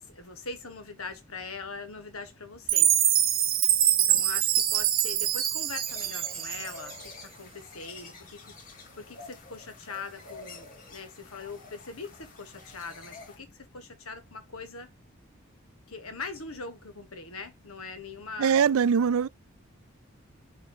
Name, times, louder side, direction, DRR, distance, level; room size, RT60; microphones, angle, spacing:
voice 1, 0.0-3.0 4.1-14.9 15.9-18.6, left 4 dB, 85° left, 1.5 m, -42 dB
Chime, 2.7-6.9, right 11 dB, 40° right, 0.8 m, -24 dB
sound 1, 5.9-13.4, left 4 dB, 40° left, 1.9 m, -48 dB
voice 2, 18.4-19.3, right 7 dB, 80° right, 0.4 m, -22 dB
6.8 x 3.0 x 5.4 m
head